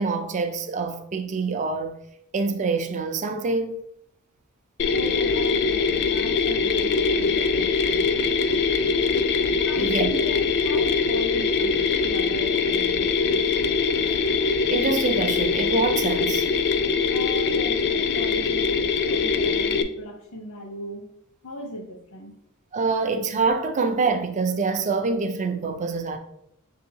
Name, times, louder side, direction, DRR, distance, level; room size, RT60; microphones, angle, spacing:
voice 1, 0.0-2.0 2.3-3.8 9.8-10.1 14.7-16.4 22.7-26.2, right 4 dB, 35° right, 0.4 m, -25 dB
voice 2, 4.8-8.1 9.6-13.4 17.1-21.1 21.4-22.3, equal, 85° left, 1.0 m, -37 dB
Mechanisms, 4.8-19.8, left 5 dB, 50° left, 0.3 m, -23 dB
6.2 x 2.7 x 2.7 m
head